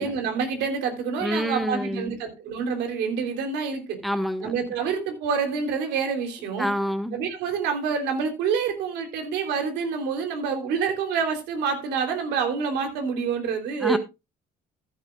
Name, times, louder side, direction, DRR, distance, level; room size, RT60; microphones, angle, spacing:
voice 1, 0.0-4.0 4.4-6.7 7.1-14.0, right 6 dB, 90° right, 3.2 m, -27 dB
voice 2, 1.2-2.2 4.0-4.5 6.6-7.2 13.8-14.0, equal, ahead, 1.6 m, -27 dB
14.0 x 11.5 x 2.4 m
cardioid pair, 110°, 17 cm